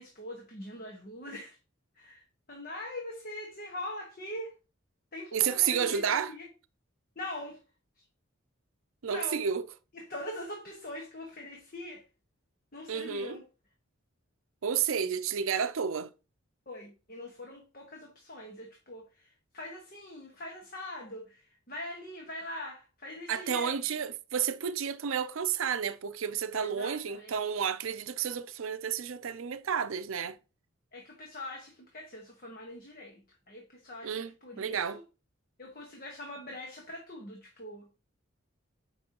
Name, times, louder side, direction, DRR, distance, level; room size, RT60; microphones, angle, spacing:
voice 1, 0.0-1.6 1.9-4.5 5.1-6.5 7.1-7.6 8.0-8.1 9.1-9.5 9.9-12.0 12.7-13.4 16.7-23.8 26.5-27.3 30.9-35.0 35.6-37.9, left 1 dB, 45° left, 1.3 m, -43 dB
voice 2, 5.3-6.3 9.0-9.6 12.9-13.4 14.6-16.1 23.3-30.4 34.0-34.3 34.6-35.0, right 7 dB, 80° right, 0.5 m, -31 dB
8.5 x 5.4 x 2.9 m
head